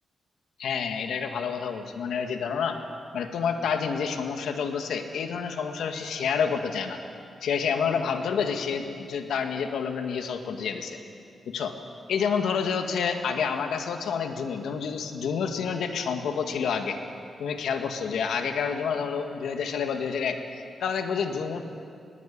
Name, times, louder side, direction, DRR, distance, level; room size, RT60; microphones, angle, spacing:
voice 1, 0.6-2.8 3.1-7.0 7.4-11.0 11.5-11.8 12.1-17.0 17.4-21.7, left 6 dB, 85° left, 5 dB, 1.9 m, -29 dB
20.5 x 20.0 x 8.6 m, 2.4 s
cardioid pair, 95°, 0 cm